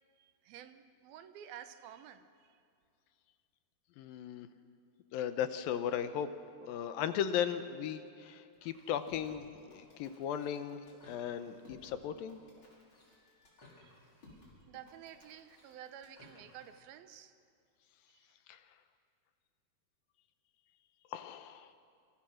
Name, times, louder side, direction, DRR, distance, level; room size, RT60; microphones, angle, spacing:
voice 1, 0.2-2.6 13.8-14.0 14.7-17.3, right 10 dB, 75° right, 10 dB, 2.8 m, -51 dB
voice 2, 4.0-4.5 5.1-6.3 6.6-10.8 11.1-12.4 18.5-18.6 21.1-21.7, left 9 dB, 75° left, 10 dB, 2.5 m, -36 dB
sound 1, 8.5-16.8, left 2 dB, 30° left, 6.0 m, -60 dB
28.5 x 24.5 x 6.5 m, 2.3 s
omnidirectional pair, 4.4 m